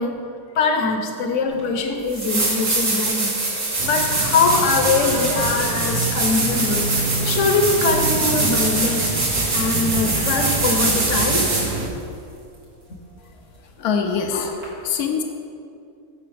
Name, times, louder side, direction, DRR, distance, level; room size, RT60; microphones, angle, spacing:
voice 1, 0.0-9.1 9.5-11.5, left 4 dB, 60° left, 4 dB, 1.1 m, -22 dB
sound 1, 1.6-1.7 2.1-11.8 14.6-14.7, right 2 dB, 85° right, 2.3 m, -23 dB
sound 2, 3.8-11.9, right 4 dB, 55° right, 0.5 m, -27 dB
voice 2, 13.8-15.2, left 6 dB, 85° left, 4 dB, 1.2 m, -24 dB
13.0 x 5.7 x 3.4 m, 2.5 s
omnidirectional pair, 1.6 m